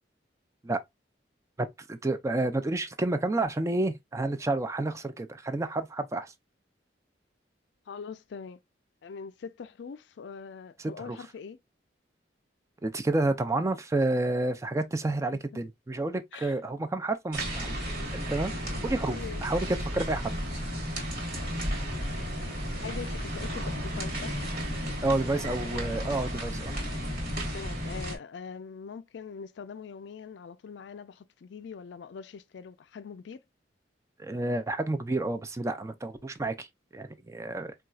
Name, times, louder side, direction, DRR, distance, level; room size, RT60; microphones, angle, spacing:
voice 1, 1.6-6.3 11.0-11.2 12.8-17.8 18.1-18.5 18.8-20.3 25.0-26.7 34.2-36.7 36.9-37.7, right 2 dB, 15° right, 0.3 m, -30 dB
voice 2, 7.9-8.6 9.0-11.6 16.3-16.5 19.1-19.4 21.9-22.4 22.8-24.4 25.4-26.3 27.5-33.4, left 6 dB, 75° left, 0.4 m, -43 dB
sound 1, 17.3-28.2, equal, 55° right, 1.3 m, -33 dB
sound 2, 21.8-27.5, left 2 dB, 75° right, 1.1 m, -50 dB
4.1 x 2.3 x 2.3 m
head